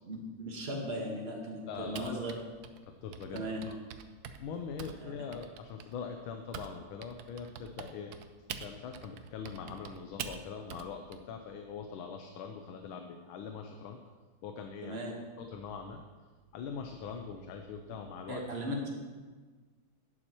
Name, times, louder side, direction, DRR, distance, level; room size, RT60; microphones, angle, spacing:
voice 1, 0.1-2.4 3.3-3.7 5.0-5.1 14.8-15.1 18.3-18.9, equal, 35° right, -1 dB, 1.5 m, -37 dB
voice 2, 1.7-2.2 2.8-3.8 4.4-8.1 8.6-14.0 14.4-15.0 15.4-16.0 16.5-18.4, left 6 dB, 85° left, 5 dB, 1.5 m, -42 dB
Typing, 1.9-6.7 7.0-11.2, right 8 dB, 75° right, 0.9 m, -45 dB
11.5 x 8.5 x 3.0 m, 1.4 s
omnidirectional pair, 2.2 m